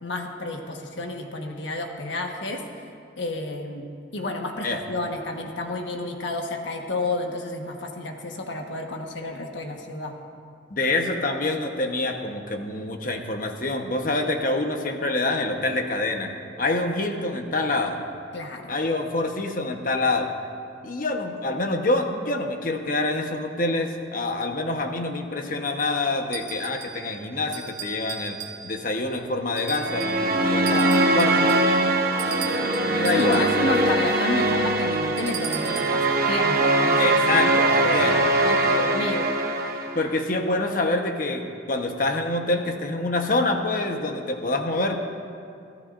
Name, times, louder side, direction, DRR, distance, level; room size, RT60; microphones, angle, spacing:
voice 1, 0.0-2.6 3.2-3.9 4.1-10.1 18.3-18.8 33.1-39.3, left 2 dB, 70° left, 2 dB, 1.4 m, -30 dB
voice 2, 10.7-18.0 18.7-20.3 20.8-28.4 28.6-31.6 32.6-33.5 37.0-38.2 39.9-45.0, left 2 dB, 45° left, 4 dB, 1.1 m, -26 dB
sound 1, 26.3-27.1 27.5-28.9 29.6-30.3 30.7-33.6 35.2-36.0, right 9 dB, 70° right, 1.5 m, -37 dB
sound 2, 29.7-40.1, right 2 dB, 50° right, 1.1 m, -22 dB
22.5 x 14.5 x 2.6 m, 2.4 s
head